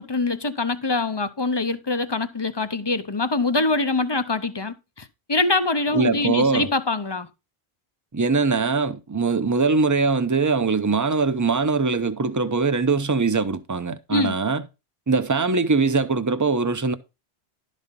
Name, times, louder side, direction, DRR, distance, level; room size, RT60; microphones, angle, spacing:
voice 1, 0.0-7.3 14.1-14.4, left 3 dB, 30° left, 0.6 m, -24 dB
voice 2, 5.9-6.7 8.1-14.6 15.1-16.9, right 4 dB, 20° right, 0.6 m, -22 dB
12.0 x 4.2 x 5.2 m
omnidirectional pair, 1.1 m